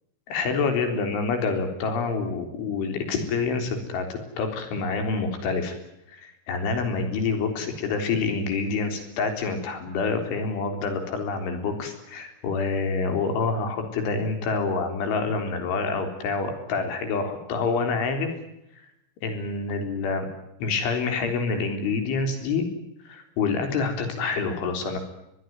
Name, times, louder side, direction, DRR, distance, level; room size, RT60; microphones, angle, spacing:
voice 1, 0.3-5.8 6.1-18.3 19.2-20.3 20.6-22.6 23.1-25.0, left 4 dB, 70° left, 6 dB, 6.2 m, -27 dB
23.5 x 21.0 x 9.4 m, 0.83 s
omnidirectional pair, 5.7 m